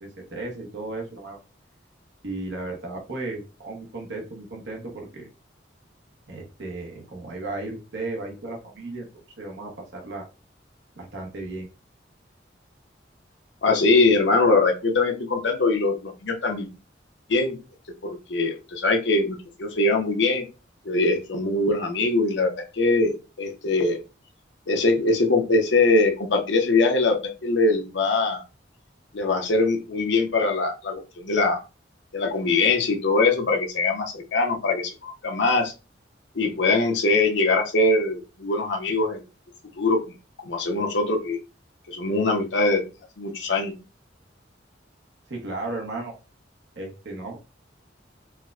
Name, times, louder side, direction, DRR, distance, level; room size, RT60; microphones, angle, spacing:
voice 1, 0.0-1.4 2.2-5.3 6.3-9.1 9.4-10.3 11.0-11.7 45.3-46.1 46.8-47.4, right 2 dB, 70° right, 0 dB, 0.8 m, -35 dB
voice 2, 13.6-16.7 17.3-17.6 18.3-20.4 20.8-24.0 24.7-28.4 29.1-31.6 32.1-35.7 36.3-39.2 39.8-40.1 40.4-41.4 41.9-42.8 43.2-43.7, left 3 dB, 75° left, 3 dB, 0.7 m, -22 dB
4.4 x 2.1 x 2.3 m, 0.31 s
head